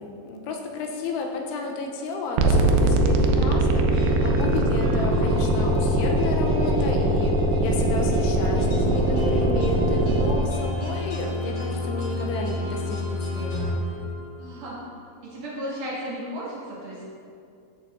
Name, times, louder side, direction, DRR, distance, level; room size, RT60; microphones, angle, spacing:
voice 1, 0.0-3.8 4.2-13.7, left 3 dB, 80° left, 2 dB, 2.8 m, -32 dB
sound 1, 2.4-10.4, right 1 dB, 85° right, 3.0 m, -21 dB
sound 2, 3.9-14.6, left 1 dB, 55° left, 3.2 m, -31 dB
voice 2, 4.7-5.1 14.4-14.8 15.2-17.1, equal, 45° right, -8 dB, 2.9 m, -35 dB
15.5 x 6.4 x 2.6 m, 2.4 s
omnidirectional pair, 5.1 m